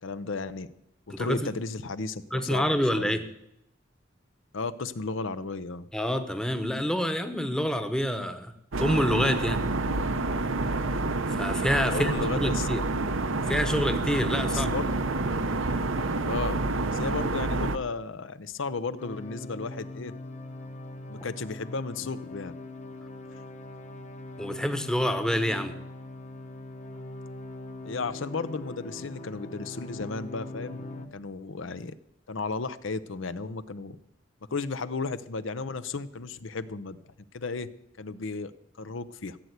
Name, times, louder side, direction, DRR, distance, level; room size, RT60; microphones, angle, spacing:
voice 1, 0.0-0.7 1.2-2.7 2.9-3.2 4.5-5.9 11.9-13.1 14.5-14.9 15.8-15.9 16.2-16.6 16.9-20.1 21.1-22.5 27.8-30.8 31.1-31.9 32.3-34.0 34.5-37.0 37.3-37.7 38.0-38.5 38.8-39.4, left 4 dB, 75° left, 13 dB, 0.7 m, -34 dB
voice 2, 1.1-1.5 2.3-3.3 5.9-8.5 8.8-9.6 11.2-12.1 12.4-12.9 13.5-14.7 24.4-25.8, equal, 5° left, 9 dB, 1.0 m, -27 dB
sound 1, 8.7-17.8, right 2 dB, 80° right, 1.0 m, -28 dB
sound 2, 19.0-31.1, left 2 dB, 35° left, 1.1 m, -41 dB
15.5 x 7.9 x 8.2 m, 0.79 s
head